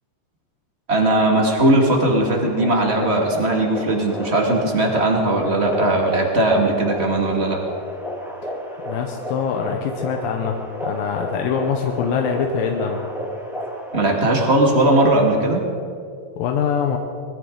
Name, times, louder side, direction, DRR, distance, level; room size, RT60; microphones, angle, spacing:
voice 1, 0.9-7.6 13.9-15.6, right 1 dB, 25° right, 0 dB, 1.4 m, -18 dB
sound 1, 2.0-14.2, equal, ahead, 0.9 m, -32 dB
voice 2, 8.8-13.0 16.4-17.0, left 7 dB, 90° left, 3 dB, 2.7 m, -24 dB
20.5 x 15.5 x 3.9 m, 2.4 s
omnidirectional pair, 3.9 m